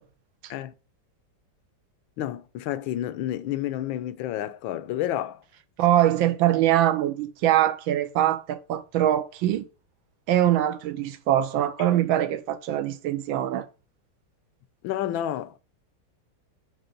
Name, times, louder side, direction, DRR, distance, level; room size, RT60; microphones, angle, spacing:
voice 1, 2.2-5.4 14.8-15.6, left 12 dB, 85° left, 1.4 m, -30 dB
voice 2, 5.8-9.6 10.3-13.7, right 12 dB, 90° right, 1.5 m, -23 dB
8.0 x 4.8 x 3.9 m
omnidirectional pair, 2.1 m